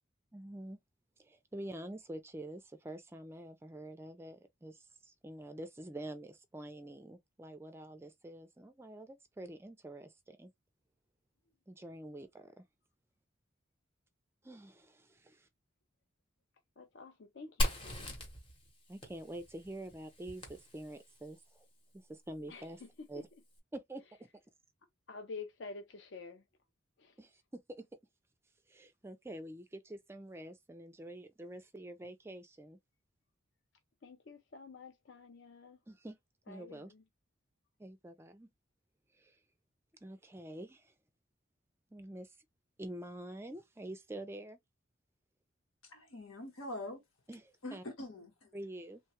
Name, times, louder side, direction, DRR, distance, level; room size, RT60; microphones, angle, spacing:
voice 1, 0.3-0.8 1.2-10.5 11.7-12.6 14.4-15.5 18.9-21.7 21.9-22.8 23.1-23.3 23.7-24.3 27.2-27.9 28.7-32.8 35.9-36.2 36.5-36.9 37.8-38.5 39.1-39.4 40.0-40.9 41.9-42.4 42.8-44.6 47.3-47.8 48.5-49.0, right 1 dB, 10° right, 0.3 m, -47 dB
voice 2, 16.8-18.2 22.5-23.1 25.1-26.4 27.0-27.1 34.0-35.8 36.5-37.0, left 4 dB, 60° left, 0.5 m, -49 dB
Fire, 17.6-21.3, left 1 dB, 25° left, 0.9 m, -38 dB
voice 3, 45.8-47.0 47.6-48.5, left 1 dB, 90° left, 1.2 m, -44 dB
3.1 x 2.3 x 2.8 m
head